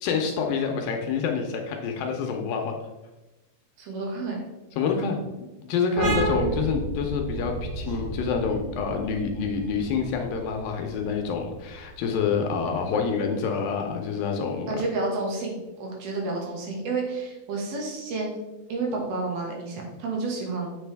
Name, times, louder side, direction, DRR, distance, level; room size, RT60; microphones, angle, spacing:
voice 1, 0.0-2.8 4.8-5.2 5.6-14.8, left 5 dB, 75° left, 3 dB, 2.3 m, -27 dB
voice 2, 3.8-4.4 6.0-6.2 14.7-18.4 18.7-20.9, right 3 dB, 75° right, -1 dB, 3.5 m, -30 dB
sound 1, 6.0-13.3, right 2 dB, 55° right, 1.7 m, -32 dB
8.2 x 5.9 x 3.4 m, 1.0 s
omnidirectional pair, 4.4 m